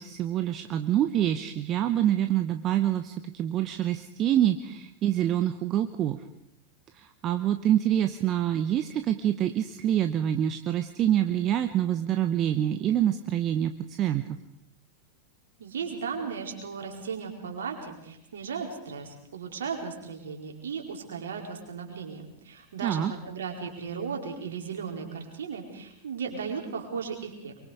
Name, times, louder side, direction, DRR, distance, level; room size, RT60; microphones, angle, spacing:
voice 1, 0.0-6.2 6.9-14.2 22.8-23.1, right 11 dB, 35° right, 9 dB, 0.9 m, -26 dB
voice 2, 15.6-27.5, right 6 dB, 65° right, 2 dB, 4.5 m, -36 dB
24.0 x 23.5 x 5.0 m, 0.79 s
figure-of-eight pair, 90°, 0 cm